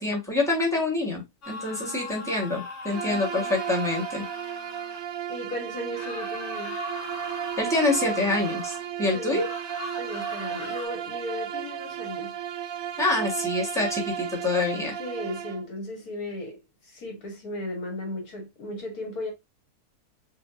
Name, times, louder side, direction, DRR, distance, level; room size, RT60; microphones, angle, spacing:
voice 1, 0.0-4.2 7.6-9.4 13.0-14.9, left 2 dB, ahead, 1.0 m, -26 dB
sound 1, 1.4-5.1 5.9-8.9 9.3-10.9, left 2 dB, 55° left, 1.3 m, -39 dB
Bowed string instrument, 2.9-15.7, right 10 dB, 70° right, 0.9 m, -34 dB
voice 2, 3.0-3.5 5.3-6.8 9.0-9.4 10.0-12.4 15.0-19.3, left 1 dB, 75° left, 1.6 m, -36 dB
5.5 x 2.1 x 2.4 m
omnidirectional pair, 1.6 m